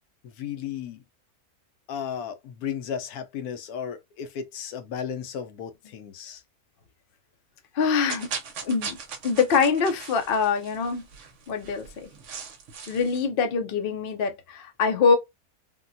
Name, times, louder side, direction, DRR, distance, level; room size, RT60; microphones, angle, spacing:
voice 1, 0.4-1.0 1.9-6.4, left 8 dB, 75° left, 1.0 m, -34 dB
voice 2, 7.7-8.3 8.6-9.0 9.2-11.0 11.5-12.1 12.9-15.1, left 5 dB, 55° left, 0.6 m, -24 dB
sound 1, 8.1-13.3, right 6 dB, 60° right, 0.9 m, -39 dB
3.6 x 2.2 x 2.6 m
omnidirectional pair, 1.6 m